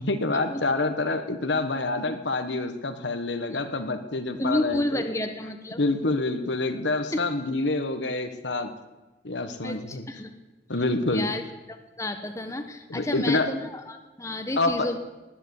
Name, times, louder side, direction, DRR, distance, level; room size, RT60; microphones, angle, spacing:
voice 1, 0.0-5.0 5.7-8.7 9.2-10.1 10.7-11.3 12.9-13.5 14.6-14.9, left 2 dB, 75° left, 8 dB, 1.4 m, -27 dB
voice 2, 4.4-5.8 7.1-7.2 9.6-10.3 11.1-11.4 11.7-15.0, left 1 dB, 15° left, 6 dB, 1.2 m, -30 dB
19.0 x 10.5 x 7.2 m, 1.1 s
head